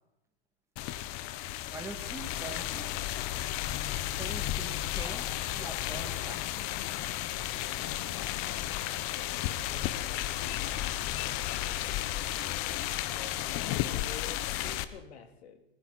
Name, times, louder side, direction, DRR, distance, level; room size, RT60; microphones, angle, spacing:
sound 1, 0.8-14.8, left 14 dB, 40° left, 1.0 m, -33 dB
voice 1, 1.7-3.1 4.2-6.8, right 2 dB, 10° right, 5 dB, 2.3 m, -44 dB
voice 2, 8.7-11.2 13.2-15.6, left 6 dB, 70° left, 7 dB, 2.5 m, -50 dB
19.5 x 15.5 x 4.2 m, 0.87 s
hypercardioid pair, 125°, 33 cm